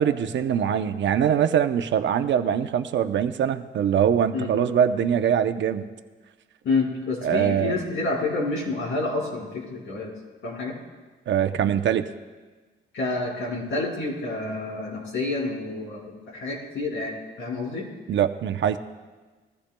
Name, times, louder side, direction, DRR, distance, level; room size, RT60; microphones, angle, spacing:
voice 1, 0.0-5.9 7.2-7.8 11.3-12.1 18.1-18.8, right 9 dB, 65° right, 9 dB, 0.7 m, -23 dB
voice 2, 6.6-10.1 10.4-10.8 12.9-17.9, left 3 dB, 75° left, -2 dB, 4.9 m, -28 dB
20.5 x 15.0 x 2.2 m, 1.3 s
cardioid pair, 125°, 20 cm